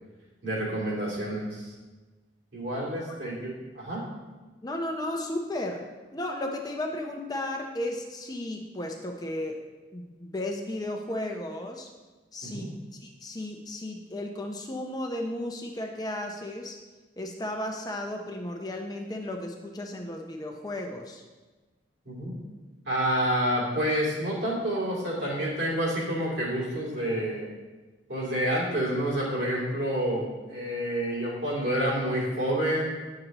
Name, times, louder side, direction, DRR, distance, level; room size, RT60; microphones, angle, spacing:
voice 1, 0.4-1.7 2.5-4.0 12.4-12.7 22.0-22.3 22.9-27.5 28.1-32.9, right 1 dB, 65° right, -5 dB, 2.7 m, -28 dB
voice 2, 4.6-9.7 9.9-11.9 12.3-16.8 17.2-21.2, left 1 dB, 20° left, 2 dB, 0.5 m, -34 dB
9.6 x 6.6 x 2.9 m, 1.3 s
head